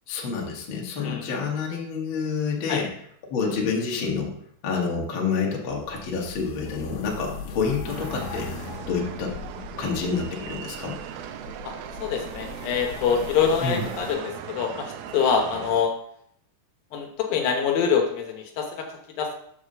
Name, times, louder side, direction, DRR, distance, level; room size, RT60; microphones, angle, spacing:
voice 1, 0.1-2.9 3.3-4.3 4.6-9.4 9.8-11.0 13.6-13.9, left 5 dB, 50° left, -1 dB, 1.5 m, -28 dB
voice 2, 1.0-1.3 2.7-2.8 12.0-15.9 16.9-18.9 19.2-19.4, left 6 dB, 75° left, 3 dB, 2.5 m, -25 dB
sound 1, 5.7-14.2, left 5 dB, 90° left, 2.8 m, -39 dB
sound 2, 7.9-15.8, right 9 dB, 80° right, 2.4 m, -38 dB
6.7 x 4.8 x 6.6 m, 0.70 s
omnidirectional pair, 4.5 m